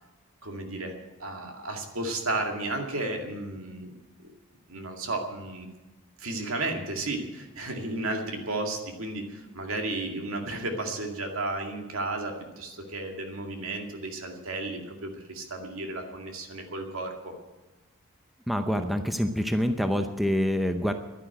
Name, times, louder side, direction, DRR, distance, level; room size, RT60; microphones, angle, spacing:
voice 1, 0.4-3.9 4.7-5.7 6.2-17.3, right 2 dB, 70° right, 3 dB, 2.2 m, -33 dB
voice 2, 18.5-20.9, equal, ahead, 6 dB, 0.7 m, -26 dB
11.5 x 10.5 x 8.9 m, 1.1 s
head